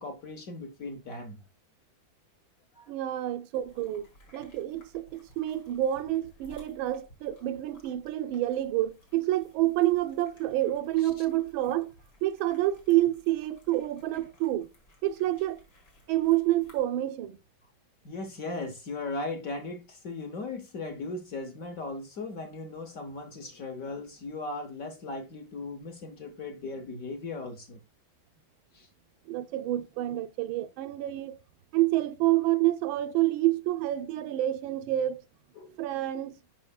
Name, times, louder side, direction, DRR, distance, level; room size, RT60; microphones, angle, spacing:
voice 1, 0.0-1.4 2.7-2.9 11.0-11.2 18.0-27.8 28.7-28.9 35.6-35.8, left 3 dB, 55° left, 1.0 m, -38 dB
voice 2, 2.9-4.1 4.3-11.9 12.2-14.7 15.0-15.6 16.1-17.4 29.3-31.4 31.7-35.2 35.8-36.3, right 14 dB, 80° right, 1.3 m, -28 dB
sound 1, 3.5-16.8, equal, 75° left, 2.6 m, -58 dB
11.0 x 4.8 x 2.3 m
omnidirectional pair, 2.2 m